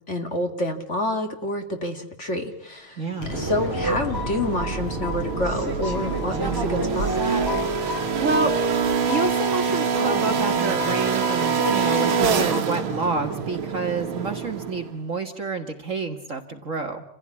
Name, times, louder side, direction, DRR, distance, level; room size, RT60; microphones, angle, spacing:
voice 1, 0.1-3.0 3.3-7.3, left 1 dB, 35° left, 5 dB, 2.5 m, -28 dB
voice 2, 3.0-3.3 8.2-8.5 9.1-17.0, right 3 dB, 40° right, 5 dB, 1.9 m, -28 dB
sound 1, 3.1-15.0, right 6 dB, 85° right, 2.2 m, -26 dB
Explosion, 3.2-9.2, right 3 dB, 80° left, 7.3 m, -34 dB
sound 2, 3.3-12.6, equal, 10° right, 3.5 m, -31 dB
28.5 x 16.0 x 9.8 m, 0.71 s
omnidirectional pair, 2.3 m